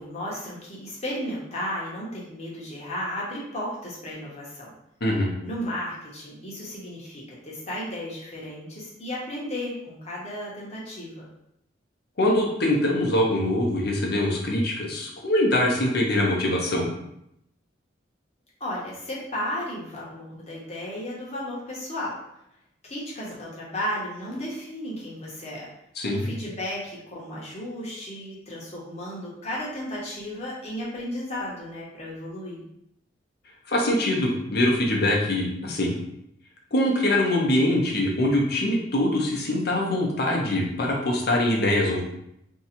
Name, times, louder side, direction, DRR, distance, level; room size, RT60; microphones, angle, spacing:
voice 1, 0.0-4.7 5.4-11.2 18.6-22.2 22.8-25.7 26.1-32.6, equal, 35° left, -5 dB, 0.9 m, -34 dB
voice 2, 12.2-16.9 26.0-26.3 33.7-35.9 36.7-42.0, left 1 dB, 55° left, -1 dB, 0.7 m, -23 dB
2.7 x 2.3 x 4.1 m, 0.78 s
head